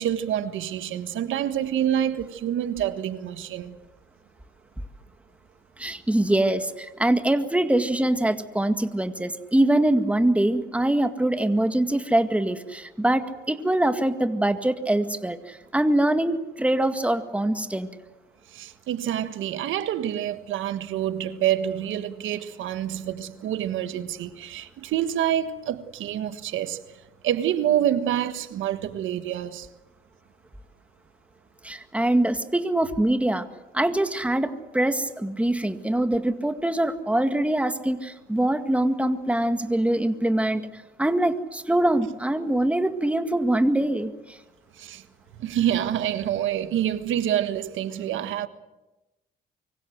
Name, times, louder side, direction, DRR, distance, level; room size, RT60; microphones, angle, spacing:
voice 1, 0.0-3.8 18.5-26.8 27.2-29.7 44.8-45.0 45.4-48.5, right 11 dB, 80° right, 1.5 m, -27 dB
voice 2, 5.8-15.4 15.7-17.9 31.6-33.5 33.7-40.6 41.0-44.1, right 1 dB, 5° right, 1.9 m, -23 dB
25.0 x 24.5 x 7.9 m
cardioid pair, 90°, 20 cm